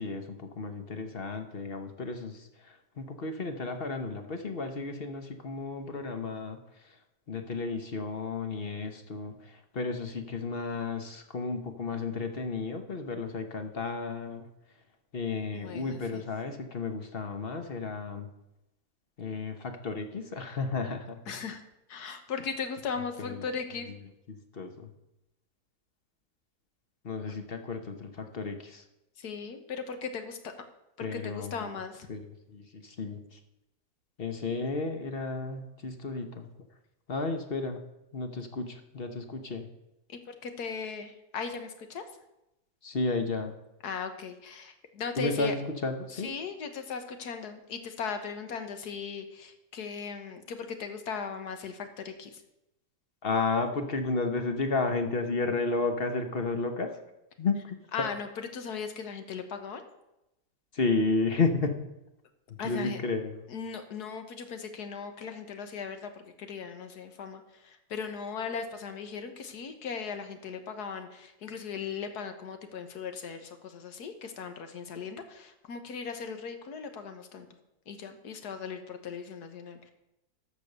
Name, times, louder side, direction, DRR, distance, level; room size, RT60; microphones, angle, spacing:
voice 1, 0.0-2.4 3.0-6.6 7.3-9.3 9.7-14.4 15.1-18.3 19.2-21.3 23.3-23.4 24.6-24.7 27.0-28.8 31.0-31.5 32.1-32.2 32.5-33.2 34.2-36.4 37.1-37.8 38.1-39.7 42.8-43.5 45.2-46.3 53.2-56.9 57.4-57.6 60.7-61.8 62.6-63.4, left 3 dB, 40° left, 6 dB, 1.0 m, -32 dB
voice 2, 15.5-16.2 21.3-21.6 21.9-23.9 29.2-30.4 31.0-32.1 40.1-42.0 43.8-45.5 46.1-52.4 57.9-59.8 62.6-63.0 63.5-66.1 66.4-77.5 77.9-79.9, left 6 dB, 70° left, 7 dB, 1.6 m, -38 dB
13.0 x 5.3 x 6.6 m, 0.89 s
omnidirectional pair, 1.8 m